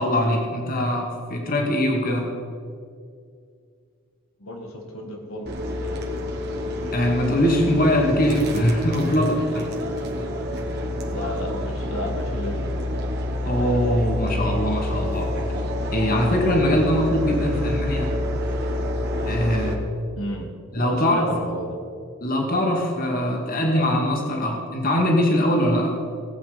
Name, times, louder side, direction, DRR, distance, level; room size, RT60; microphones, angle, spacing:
voice 1, 0.0-2.3 6.9-9.7 13.5-15.3 15.9-18.1 19.2-19.8 20.7-21.4 22.2-25.9, equal, 45° left, 1 dB, 2.2 m, -22 dB
voice 2, 4.4-6.0 11.1-12.9 17.5-17.9 20.2-20.5 20.8-21.8, equal, 85° left, 2 dB, 1.9 m, -34 dB
sound 1, 5.5-19.7, left 1 dB, 50° right, 1.9 m, -27 dB
18.5 x 8.7 x 5.2 m, 2.3 s
head